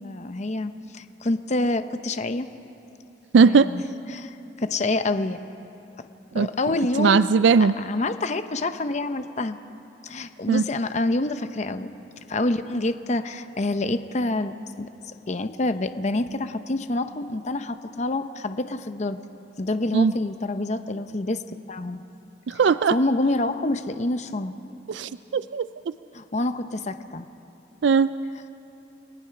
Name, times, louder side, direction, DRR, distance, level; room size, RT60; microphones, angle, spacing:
voice 1, 0.0-2.5 3.4-3.8 4.1-5.4 6.0-6.1 6.3-7.2 7.8-9.6 10.0-11.9 12.3-14.9 15.3-19.2 19.6-21.4 21.7-22.0 22.9-24.5 26.1-27.3, left 2 dB, 40° left, 10 dB, 0.7 m, -27 dB
voice 2, 3.3-3.7 6.3-6.5 7.0-7.7 10.5-10.6 19.9-20.1 22.5-23.0 24.9-25.7 27.8-28.1, right 5 dB, 75° right, 14 dB, 0.4 m, -18 dB
29.5 x 19.5 x 5.9 m, 2.9 s
head